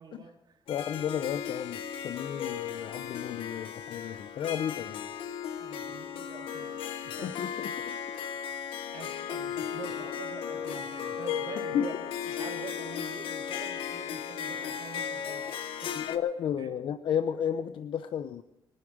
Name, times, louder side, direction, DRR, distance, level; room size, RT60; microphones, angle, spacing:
voice 1, 0.0-0.6 5.6-7.3 8.9-12.0 12.2-16.1 16.6-16.7, right 6 dB, 55° right, 2 dB, 3.1 m, -46 dB
Harp, 0.7-16.2, left 8 dB, 85° left, 1.2 m, -36 dB
voice 2, 0.7-5.1 7.2-7.9 11.7-11.9 16.0-18.4, left 9 dB, 70° left, 11 dB, 0.7 m, -33 dB
23.0 x 10.0 x 6.2 m, 0.93 s
cardioid pair, 90°, 9 cm